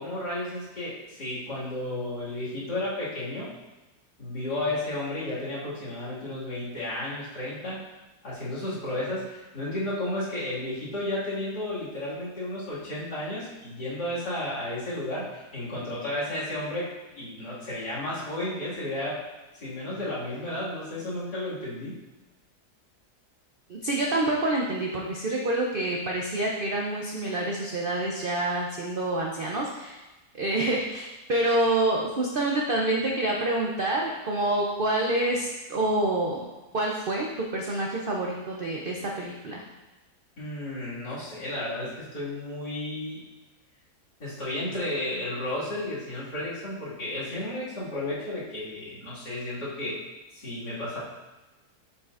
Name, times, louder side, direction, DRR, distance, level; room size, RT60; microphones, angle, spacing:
voice 1, 0.0-3.5 4.2-7.8 8.2-16.9 17.1-19.2 19.5-22.0 40.4-43.2 44.2-50.0 50.3-51.0, left 1 dB, 85° left, -10 dB, 2.7 m, -33 dB
voice 2, 23.7-30.0 30.3-36.4 36.7-39.6, right 1 dB, 70° right, -1 dB, 0.5 m, -27 dB
7.3 x 5.2 x 2.5 m, 1.1 s
omnidirectional pair, 1.7 m